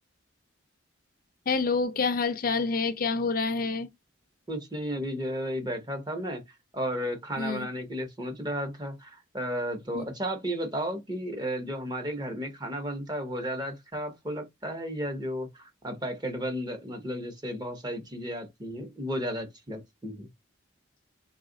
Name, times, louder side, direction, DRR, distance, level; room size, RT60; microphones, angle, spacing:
voice 1, 1.5-3.9 7.4-7.7 9.9-10.0, left 4 dB, 50° left, 0.5 m, -27 dB
voice 2, 4.5-6.4 6.7-20.3, equal, 20° right, 0.9 m, -33 dB
3.6 x 2.4 x 3.8 m
head